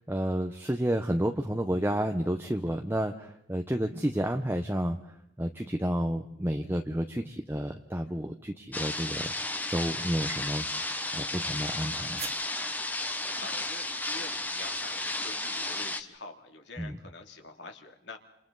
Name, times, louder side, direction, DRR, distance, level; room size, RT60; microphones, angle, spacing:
voice 1, 0.0-9.3 9.7-10.7 11.1-12.2 16.8-17.0, equal, 10° right, 4 dB, 0.9 m, -31 dB
sound 1, 8.7-16.0, left 2 dB, 10° left, 1.1 m, -33 dB
sound 2, 10.4-14.0, right 7 dB, 35° right, 1.7 m, -49 dB
voice 2, 13.4-18.2, left 3 dB, 65° left, 4 dB, 2.7 m, -46 dB
28.5 x 27.5 x 4.0 m, 0.81 s
head